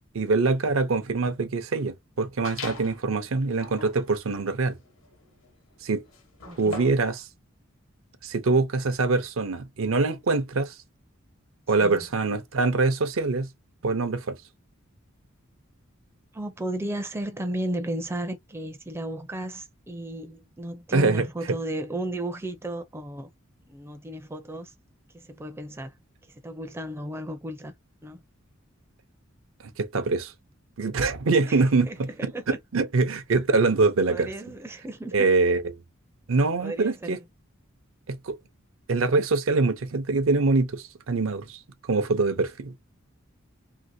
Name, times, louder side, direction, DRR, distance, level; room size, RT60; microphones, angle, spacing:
voice 1, 0.1-4.8 5.8-6.0 6.6-7.3 8.2-10.7 11.7-13.5 13.8-14.4 20.9-21.3 29.8-30.3 30.8-31.9 32.7-34.3 35.1-35.6 36.3-37.2 38.1-38.4 38.9-41.6 41.9-42.7, right 3 dB, 75° right, 0.6 m, -24 dB
sound 1, 2.4-3.0 3.5-7.1, left 3 dB, 70° left, 1.0 m, -41 dB
voice 2, 6.4-6.9 11.8-12.1 16.3-23.3 23.7-24.7 25.1-25.9 26.3-27.7 28.0-28.2 31.5-32.6 34.1-35.3 36.6-37.2, right 1 dB, 10° right, 0.4 m, -34 dB
2.8 x 2.7 x 2.6 m
head